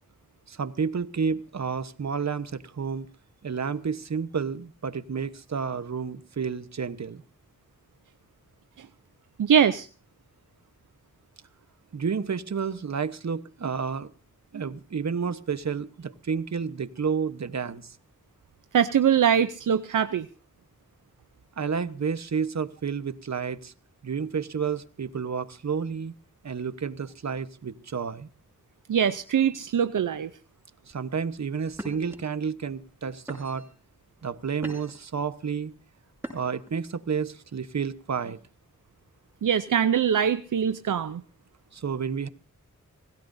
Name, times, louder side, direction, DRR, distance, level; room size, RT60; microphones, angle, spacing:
voice 1, 0.5-3.1 3.4-7.2 11.9-14.1 14.5-18.0 21.6-23.7 24.0-26.1 26.4-28.3 30.9-33.7 34.2-35.7 36.3-38.4 41.7-42.3, right 6 dB, 60° right, 1.1 m, -30 dB
voice 2, 9.4-9.9 14.5-14.6 18.7-20.2 28.9-30.3 39.4-41.2, right 8 dB, 80° right, 0.7 m, -22 dB
sound 1, 30.9-31.2 31.7-32.2 32.8-33.0 33.3-33.8 34.3-35.1 36.2-36.7, equal, 5° right, 6.8 m, -41 dB
26.0 x 16.5 x 2.7 m
cardioid pair, 60°, 31 cm